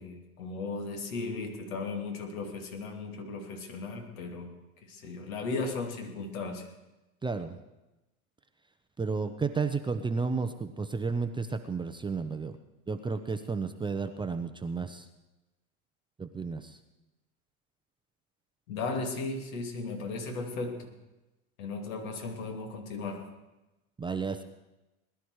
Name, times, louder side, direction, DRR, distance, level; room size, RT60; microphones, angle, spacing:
voice 1, 0.0-4.6 4.9-6.6 18.7-20.9 21.6-23.2, left 3 dB, 70° left, 3 dB, 3.0 m, -36 dB
voice 2, 7.2-7.6 9.0-12.6 12.9-15.1 16.2-16.8 24.0-24.4, right 4 dB, 10° right, 8 dB, 0.7 m, -32 dB
20.5 x 11.5 x 4.8 m, 1.0 s
hypercardioid pair, 100°, 43 cm